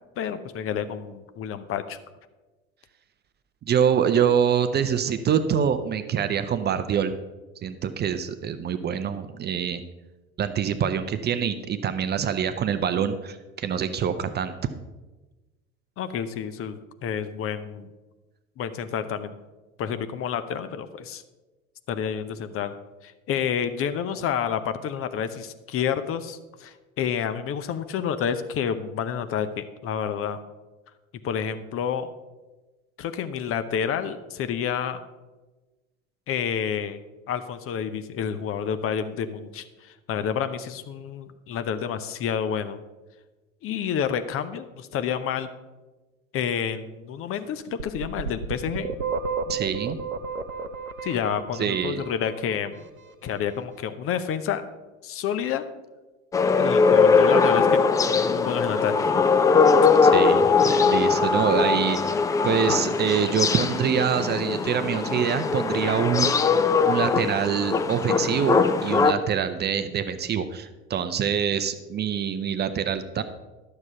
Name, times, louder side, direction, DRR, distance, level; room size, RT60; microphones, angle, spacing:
voice 1, 0.2-2.0 16.0-17.9 18.6-19.3 19.8-21.2 21.9-22.7 23.0-30.4 31.2-32.1 33.0-35.0 36.3-37.0 37.3-42.8 43.6-45.5 46.3-48.9 51.0-52.8 53.2-54.6 55.0-55.6 56.6-57.8 58.1-59.1, left 8 dB, 35° left, 11 dB, 0.7 m, -29 dB
voice 2, 3.7-7.1 7.6-9.8 10.4-14.5 49.5-50.0 51.6-52.0 60.0-62.2 62.4-73.2, right 8 dB, 25° right, 10 dB, 0.6 m, -25 dB
sound 1, 47.8-52.6, right 5 dB, 90° right, 0.6 m, -32 dB
sound 2, 56.3-69.1, left 5 dB, 10° left, 0.3 m, -21 dB
12.0 x 6.7 x 5.7 m, 1.2 s
figure-of-eight pair, 70°, 40 cm